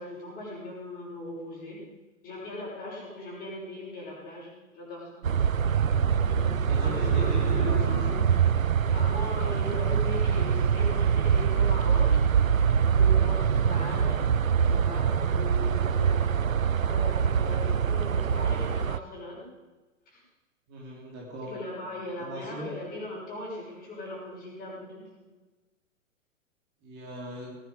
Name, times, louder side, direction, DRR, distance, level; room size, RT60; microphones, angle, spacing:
voice 1, 0.0-1.9 2.2-5.2 6.2-8.4 8.9-12.2 12.9-14.3 14.7-19.5 20.1-20.2 21.4-25.3, left 1 dB, 20° left, -4 dB, 6.1 m, -38 dB
sound 1, 5.2-19.0, right 7 dB, 85° right, 0.5 m, -24 dB
voice 2, 6.7-8.2 13.7-13.9 20.7-21.6 22.2-22.7 26.8-27.6, right 1 dB, 25° right, -2 dB, 3.1 m, -39 dB
18.5 x 9.9 x 5.0 m, 1.2 s
figure-of-eight pair, 110°, 39 cm